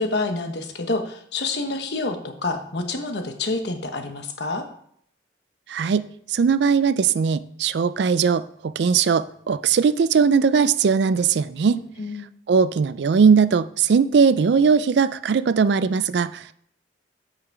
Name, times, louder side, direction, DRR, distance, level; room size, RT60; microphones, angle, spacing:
voice 1, 0.0-4.6 11.7-12.3, left 3 dB, 65° left, 6 dB, 1.0 m, -28 dB
voice 2, 5.7-11.8 12.5-16.5, right 6 dB, 65° right, 15 dB, 0.4 m, -19 dB
7.9 x 5.8 x 4.6 m, 0.65 s
head